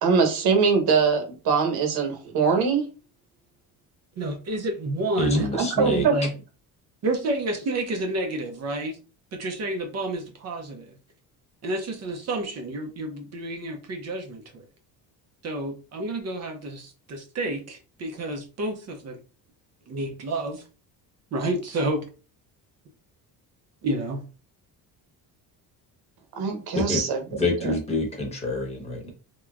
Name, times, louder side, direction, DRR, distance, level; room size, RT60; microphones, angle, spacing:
voice 1, 0.0-2.9 5.5-6.1 26.4-27.7, right 5 dB, 65° right, 1.1 m, -23 dB
voice 2, 4.2-5.5 5.8-6.3 7.0-9.0 9.3-10.9 11.6-14.6 15.4-19.2 19.9-20.6 21.3-22.0 23.8-24.2, right 2 dB, 40° right, 0.6 m, -29 dB
voice 3, 5.2-6.1 26.7-27.0 27.3-29.1, left 2 dB, 15° left, 1.0 m, -27 dB
3.3 x 2.9 x 2.3 m
cardioid pair, 160°, 40 cm